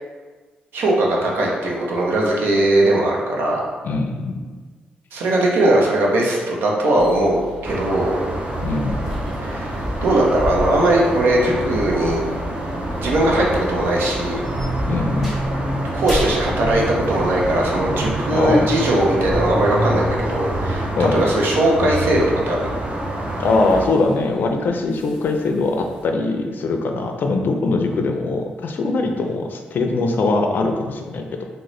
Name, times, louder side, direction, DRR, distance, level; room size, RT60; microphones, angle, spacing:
voice 1, 0.7-3.6 5.1-8.1 9.4-9.8 10.0-12.2 13.0-14.4 15.9-22.7, right 1 dB, 80° right, -2 dB, 0.6 m, -19 dB
voice 2, 3.8-4.4 8.6-9.0 14.9-15.3 18.3-18.7 21.0-21.2 23.4-31.4, left 3 dB, 60° left, 4 dB, 0.4 m, -21 dB
sound 1, 6.9-26.0, left 1 dB, 5° right, 1.2 m, -38 dB
sound 2, 7.6-23.9, right 1 dB, 35° right, 0.5 m, -26 dB
3.7 x 2.1 x 3.1 m, 1.4 s
cardioid pair, 70°, 4 cm